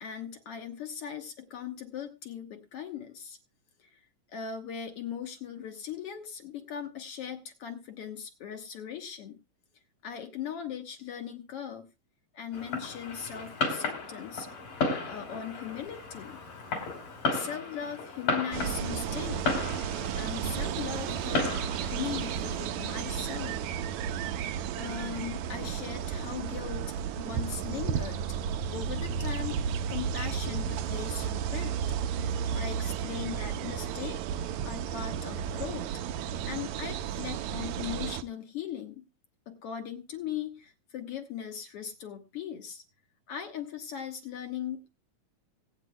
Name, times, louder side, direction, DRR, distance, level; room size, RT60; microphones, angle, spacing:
voice 1, 0.0-3.4 3.8-4.0 4.3-9.4 10.0-11.9 12.3-14.5 15.1-16.4 17.3-19.5 20.1-23.6 24.8-28.2 28.7-31.8 32.6-34.2 34.6-35.9 36.4-39.1 39.5-42.8 43.3-44.9, left 8 dB, 60° left, 6 dB, 1.7 m, -39 dB
Fireworks, 12.5-22.6, left 3 dB, 80° left, 5.1 m, -34 dB
sound 1, 18.5-38.2, right 8 dB, 75° right, 1.9 m, -33 dB
25.0 x 8.9 x 2.3 m, 0.26 s
omnidirectional pair, 3.7 m